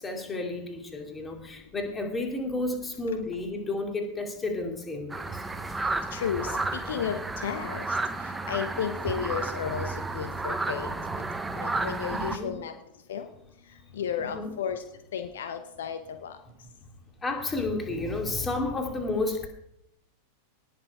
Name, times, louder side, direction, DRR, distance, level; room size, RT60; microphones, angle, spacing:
voice 1, 0.0-5.4 12.1-12.6 14.2-14.5 17.2-19.5, left 2 dB, 15° left, 3 dB, 2.6 m, -31 dB
sound 1, 5.1-12.4, right 3 dB, 10° right, 1.0 m, -32 dB
voice 2, 6.1-10.9 11.5-12.7 13.1-13.3 13.9-14.8 15.1-16.4, left 8 dB, 60° left, 8 dB, 0.9 m, -33 dB
18.5 x 6.6 x 4.8 m, 0.80 s
figure-of-eight pair, 90°, 0 cm